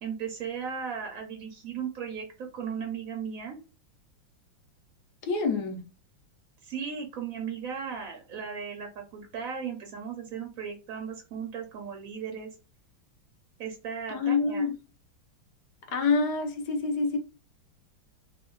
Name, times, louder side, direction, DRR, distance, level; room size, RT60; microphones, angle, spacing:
voice 1, 0.0-3.6 6.6-12.5 13.6-14.7, right 7 dB, 65° right, 0.8 m, -36 dB
voice 2, 5.2-5.8 14.1-14.8 15.9-17.2, left 4 dB, 65° left, 1.1 m, -26 dB
3.4 x 2.3 x 3.7 m
omnidirectional pair, 2.3 m